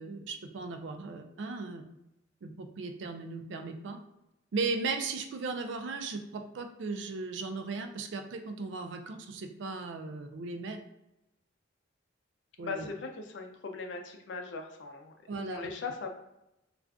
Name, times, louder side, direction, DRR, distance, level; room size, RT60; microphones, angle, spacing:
voice 1, 0.0-1.8 2.4-4.0 4.5-10.8 12.6-12.9 15.3-15.7, right 4 dB, 70° right, 6 dB, 0.4 m, -37 dB
voice 2, 12.6-15.1 15.4-16.1, left 4 dB, 70° left, 4 dB, 0.4 m, -39 dB
2.4 x 2.3 x 3.4 m, 0.88 s
head